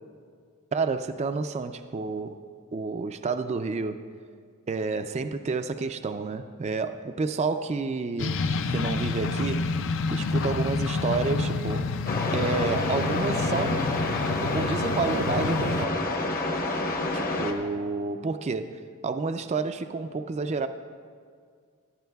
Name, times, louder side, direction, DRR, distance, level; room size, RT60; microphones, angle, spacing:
voice 1, 0.7-2.4 2.7-4.0 4.7-9.7 10.1-11.9 12.3-13.9 14.3-16.0 17.1-20.7, right 4 dB, 30° right, 9 dB, 0.3 m, -30 dB
sound 1, 8.2-15.9, left 4 dB, 60° left, 0.5 m, -29 dB
sound 2, 12.1-17.5, left 2 dB, 40° left, 0.9 m, -28 dB
18.5 x 11.5 x 2.3 m, 2.1 s
head